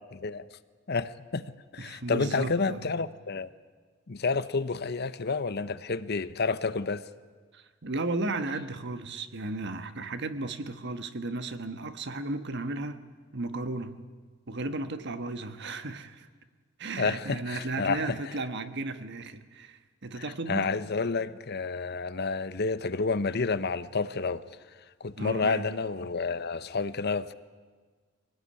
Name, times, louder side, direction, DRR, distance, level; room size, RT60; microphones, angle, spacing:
voice 1, 0.1-0.5 0.9-1.4 1.7-3.5 4.1-7.0 17.0-18.2 20.2-24.4 25.0-27.3, left 4 dB, 55° left, 0.8 m, -30 dB
voice 2, 1.8-3.0 7.5-13.0 13.3-14.0 14.5-16.3 16.8-20.7 25.2-25.7, right 2 dB, 60° right, 1.3 m, -35 dB
23.5 x 18.0 x 9.9 m
head